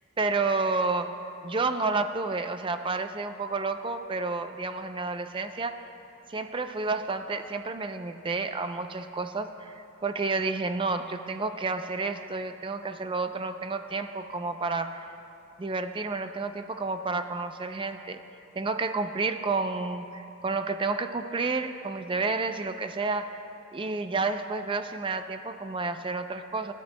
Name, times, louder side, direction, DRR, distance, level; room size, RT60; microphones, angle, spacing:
voice 1, 0.2-1.2 1.4-5.8 6.3-15.1 15.6-18.2 18.5-23.4 23.7-26.7, right 3 dB, 25° right, 8 dB, 0.4 m, -30 dB
24.0 x 11.5 x 2.2 m, 2.8 s
head